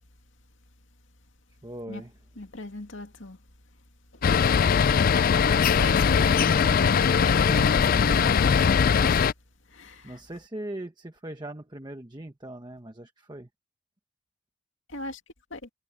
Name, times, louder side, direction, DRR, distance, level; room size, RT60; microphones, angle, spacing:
voice 1, 1.6-2.1 6.1-7.0 7.4-8.4 10.0-13.5, right 1 dB, 20° right, 1.1 m, -40 dB
voice 2, 2.3-3.4 4.1-4.3 5.4-8.5 8.9-9.3 9.6-10.2 14.9-15.2 15.5-15.7, left 1 dB, 65° left, 2.5 m, -37 dB
sound 1, 4.2-9.3, left 6 dB, 45° left, 0.4 m, -21 dB
head